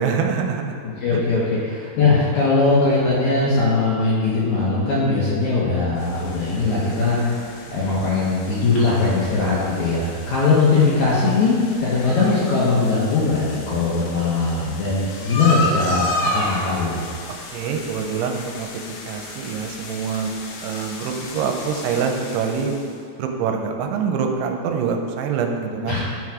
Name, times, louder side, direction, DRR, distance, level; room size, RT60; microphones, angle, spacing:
voice 1, 0.0-0.7 1.1-1.2 17.3-18.7 19.1-20.3 20.6-22.7 23.2-26.0, right 6 dB, 90° right, 3 dB, 2.7 m, -25 dB
voice 2, 0.8-7.3 7.7-17.0 25.9-26.0, left 3 dB, 70° left, -7 dB, 1.9 m, -20 dB
sound 1, 6.0-23.0, left 2 dB, 90° left, 3.0 m, -32 dB
9.0 x 4.8 x 4.8 m, 2.3 s
omnidirectional pair, 4.7 m